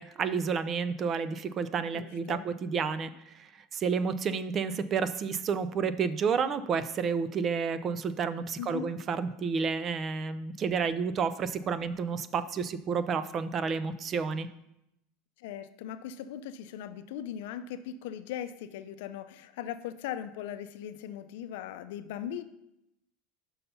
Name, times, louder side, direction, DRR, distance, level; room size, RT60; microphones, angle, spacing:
voice 1, 0.0-14.5, right 6 dB, 30° right, 13 dB, 0.4 m, -30 dB
voice 2, 1.9-2.5 8.6-8.9 15.4-22.4, left 10 dB, 75° left, 11 dB, 0.5 m, -39 dB
5.7 x 5.5 x 5.4 m, 0.83 s
supercardioid pair, 140°, 0 cm